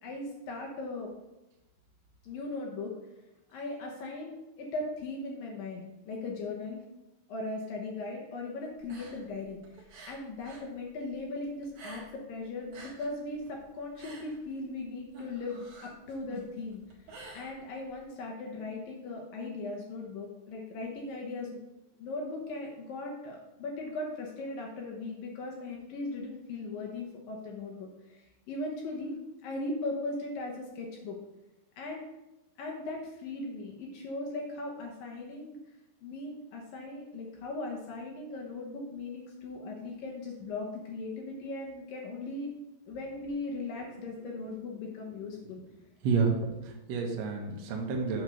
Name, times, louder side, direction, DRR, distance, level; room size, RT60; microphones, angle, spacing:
voice 1, 0.0-1.1 2.2-3.0 3.5-6.8 7.3-21.6 22.0-31.2 31.8-32.0 32.6-35.6 36.0-42.5 42.9-45.6, left 2 dB, 70° left, -1 dB, 2.4 m, -38 dB
sound 1, 8.8-10.7 11.0-12.3 12.6-18.0, right 3 dB, 50° right, 2.1 m, -49 dB
voice 2, 46.0-48.2, right 5 dB, 85° right, 1 dB, 1.5 m, -30 dB
8.6 x 4.5 x 6.2 m, 0.98 s
omnidirectional pair, 4.8 m